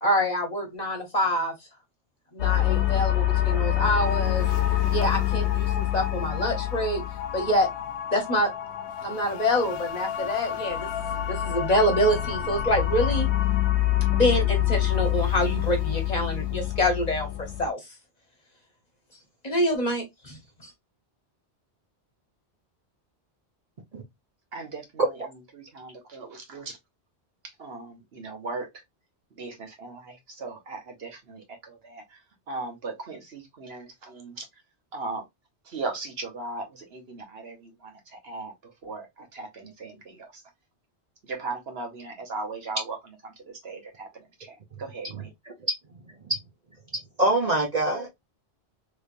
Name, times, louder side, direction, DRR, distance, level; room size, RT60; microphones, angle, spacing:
voice 1, 0.0-1.5 2.3-4.4 4.9-7.0 7.3-7.7 8.1-8.5 9.0-13.3 14.1-17.3 17.6-17.8 19.4-20.4, equal, 40° left, 1.0 m, -26 dB
sound 1, 2.4-17.7, left 13 dB, 85° left, 0.9 m, -26 dB
voice 2, 24.5-25.0 25.5-26.8 27.6-28.7 29.4-32.0 32.5-34.5 34.9-35.2 35.7-37.7 38.2-38.5 38.8-40.3 41.3-43.0 43.6-44.1 44.4-45.3, right 3 dB, 65° right, 1.3 m, -37 dB
voice 3, 47.2-48.1, right 1 dB, 45° right, 0.7 m, -24 dB
3.3 x 3.0 x 2.5 m
omnidirectional pair, 1.1 m